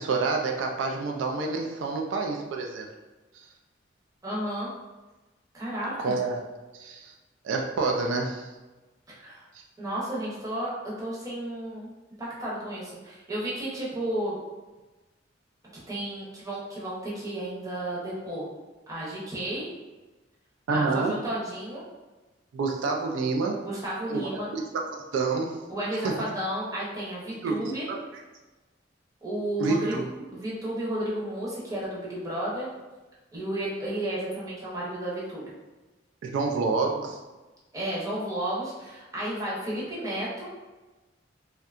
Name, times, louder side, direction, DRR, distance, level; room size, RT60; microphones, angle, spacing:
voice 1, 0.0-2.9 3.3-3.5 6.0-6.4 6.7-7.1 7.4-8.5 20.7-21.2 22.5-23.6 24.1-24.2 24.5-24.6 24.9-25.6 26.0-26.2 27.4-28.2 29.6-30.0 36.2-37.2, right 3 dB, 80° right, 2 dB, 0.3 m, -28 dB
voice 2, 4.2-4.7 5.5-6.1 9.2-9.4 9.8-11.9 12.2-14.4 15.9-18.5 18.9-19.7 20.7-21.8 23.6-24.5 25.7-27.9 29.2-29.9 30.3-32.7 33.3-35.4 37.7-40.5, right 1 dB, 20° right, -7 dB, 0.7 m, -32 dB
2.6 x 2.2 x 2.4 m, 1.2 s
head